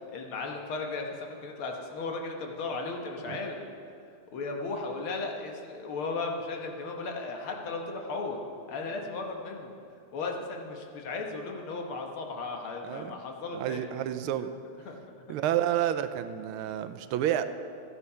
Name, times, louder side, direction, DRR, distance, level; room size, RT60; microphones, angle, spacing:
voice 1, 0.1-3.6 4.3-8.4 8.7-9.7 10.1-13.9 14.4-14.5 14.9-15.0, left 3 dB, 75° left, 2 dB, 2.1 m, -35 dB
voice 2, 12.8-13.2 13.5-14.5 15.3-17.5, right 11 dB, 85° right, 11 dB, 1.4 m, -30 dB
14.0 x 9.7 x 5.6 m, 2.5 s
omnidirectional pair, 2.3 m